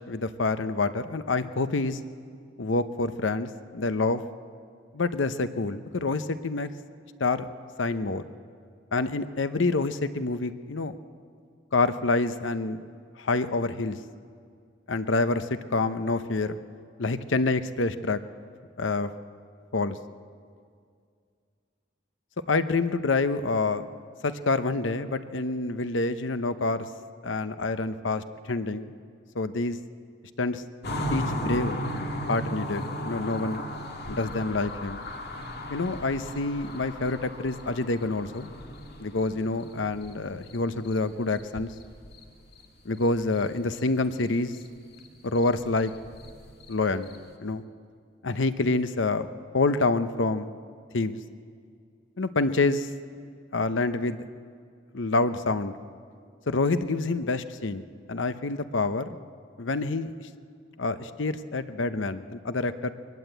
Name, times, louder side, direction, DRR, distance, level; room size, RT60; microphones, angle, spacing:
voice 1, 0.1-2.0 2.6-4.2 4.9-6.7 7.2-7.5 7.8-8.2 8.9-11.0 11.7-12.8 13.2-14.0 14.9-16.6 17.0-18.2 18.8-19.1 19.7-20.0 22.5-23.9 24.2-26.9 27.2-28.9 29.3-29.8 30.4-30.6 31.1-31.8 32.3-33.6 34.1-35.0 35.7-38.5 39.0-41.7 42.8-44.5 45.2-45.9 46.7-47.1 47.4-47.6 48.2-49.3 49.5-50.5 50.9-51.2 52.2-52.9 53.5-54.2 54.9-55.7 56.5-57.8 58.1-59.2 59.6-60.3 60.8-62.9, left 3 dB, 85° left, 11 dB, 0.8 m, -27 dB
sound 1, 30.8-41.0 41.3-42.2 42.5-42.6 43.0-43.9 44.1-44.3 44.5-47.3, equal, 60° left, 2.0 m, -36 dB
22.5 x 20.0 x 8.1 m, 2.2 s
head